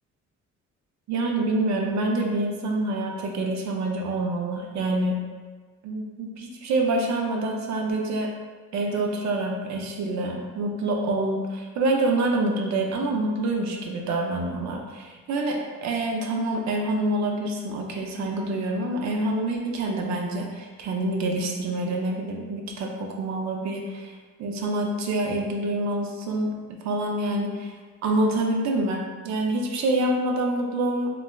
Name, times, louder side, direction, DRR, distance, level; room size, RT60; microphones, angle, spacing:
voice 1, 1.1-5.2 5.8-8.3 8.7-24.1 24.4-27.7 28.0-31.1, right 2 dB, 65° right, 1 dB, 0.5 m, -26 dB
4.1 x 2.1 x 2.2 m, 1.4 s
cardioid pair, 90°, 30 cm